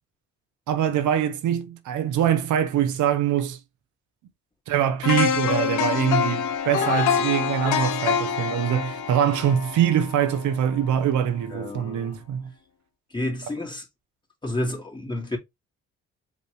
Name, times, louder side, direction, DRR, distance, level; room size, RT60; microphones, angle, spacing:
voice 1, 0.7-3.6 4.7-12.5, right 9 dB, 75° right, 0.8 m, -23 dB
sound 1, 5.0-11.0 11.4-11.6, left 7 dB, 85° left, 0.8 m, -26 dB
voice 2, 11.5-12.2 13.1-13.8 14.4-15.4, left 1 dB, 15° left, 2.1 m, -30 dB
5.1 x 3.2 x 3.2 m
cardioid pair, 90°, 30 cm